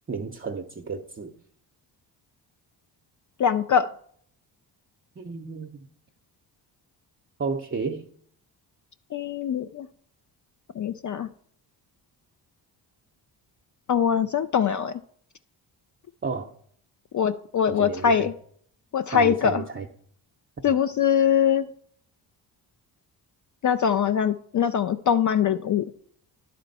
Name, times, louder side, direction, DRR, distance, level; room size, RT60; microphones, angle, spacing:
voice 1, 0.1-1.3 5.2-5.8 7.4-8.1 16.2-16.5 17.7-18.3 19.1-19.9 20.6-20.7, right 4 dB, 25° right, 2 dB, 0.7 m, -32 dB
voice 2, 3.4-3.9 9.1-9.9 10.8-11.3 13.9-15.0 17.1-18.3 18.9-19.6 20.6-21.7 23.6-25.8, left 8 dB, 40° left, 10 dB, 0.4 m, -22 dB
10.5 x 4.3 x 4.1 m, 0.62 s
supercardioid pair, 45°, 49 cm